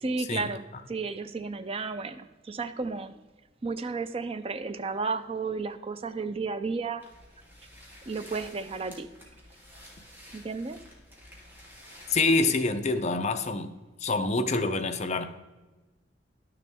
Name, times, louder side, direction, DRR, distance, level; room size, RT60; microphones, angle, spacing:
voice 1, 0.0-3.1 3.6-7.0 8.1-9.1 10.3-10.8, right 4 dB, 30° right, 0.4 m, -33 dB
sound 1, 7.0-12.4, equal, 10° right, 2.0 m, -50 dB
voice 2, 12.1-13.7 14.0-15.3, left 3 dB, 35° left, 0.6 m, -26 dB
11.5 x 6.7 x 3.6 m
head